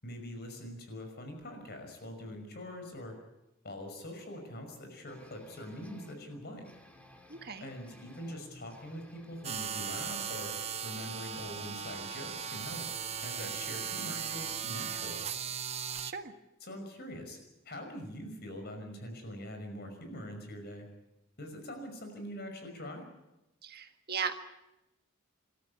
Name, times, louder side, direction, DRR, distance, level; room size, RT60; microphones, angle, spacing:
voice 1, 0.0-3.1 3.6-6.7 7.6-10.5 10.8-12.8 13.2-15.2 16.6-17.4 17.7-20.9 21.4-23.0, equal, 50° left, 5 dB, 5.7 m, -43 dB
sound 1, 5.1-14.6, left 1 dB, 5° left, 2.5 m, -56 dB
voice 2, 7.3-7.7 16.0-16.3 23.6-24.3, right 6 dB, 50° right, 7 dB, 1.5 m, -37 dB
sound 2, 9.4-16.1, right 7 dB, 30° right, 0.8 m, -37 dB
26.5 x 13.5 x 9.5 m, 0.95 s
head